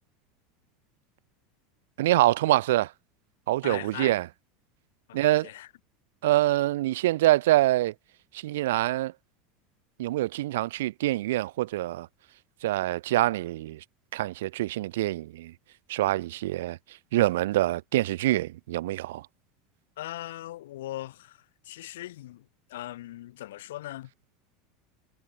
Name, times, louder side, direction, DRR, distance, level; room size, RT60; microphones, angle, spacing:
voice 1, 2.0-2.9 3.5-4.3 5.1-5.5 6.2-7.9 8.4-9.1 10.0-12.1 12.6-13.8 14.1-15.5 15.9-16.8 17.1-19.2, right 16 dB, 60° right, 2.7 m, -25 dB
voice 2, 3.6-4.2 5.1-5.7 20.0-21.4 21.6-22.4 22.7-24.1, left 15 dB, 60° left, 4.8 m, -39 dB
figure-of-eight pair, 75°, 0 cm